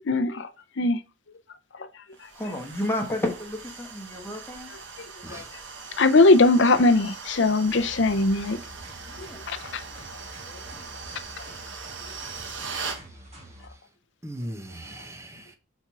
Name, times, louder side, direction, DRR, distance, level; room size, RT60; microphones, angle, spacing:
voice 1, 0.1-0.5 0.8-1.0 5.0-5.1 5.3-5.4 6.0-8.6 9.5-9.8, left 2 dB, 60° left, 0.6 m, -20 dB
sound 1, 2.2-13.0, right 5 dB, 65° right, 1.0 m, -40 dB
voice 2, 2.3-4.7 9.1-9.4, left 1 dB, 10° left, 1.1 m, -31 dB
sound 2, 7.7-13.7, right 1 dB, 30° right, 2.0 m, -47 dB
voice 3, 13.0-13.8 14.2-15.6, right 1 dB, 15° right, 0.7 m, -40 dB
5.8 x 4.4 x 4.6 m
head